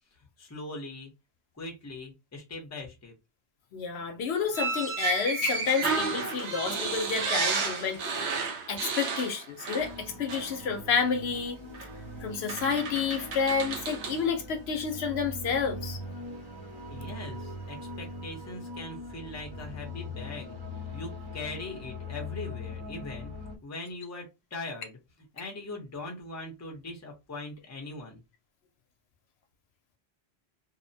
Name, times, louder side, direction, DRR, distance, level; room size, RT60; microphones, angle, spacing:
voice 1, 0.4-1.1 1.5-3.1 16.9-23.3 23.6-25.0 25.3-28.2, left 2 dB, 20° left, 0.6 m, -41 dB
voice 2, 3.7-11.6 12.2-16.0, left 6 dB, 70° left, 0.9 m, -30 dB
sound 1, 4.5-10.0 10.3-10.5 11.7-11.9 12.5-14.2, right 4 dB, 80° right, 0.9 m, -32 dB
sound 2, 9.8-23.6, left 2 dB, 25° right, 0.7 m, -41 dB
2.7 x 2.1 x 2.6 m
omnidirectional pair, 1.1 m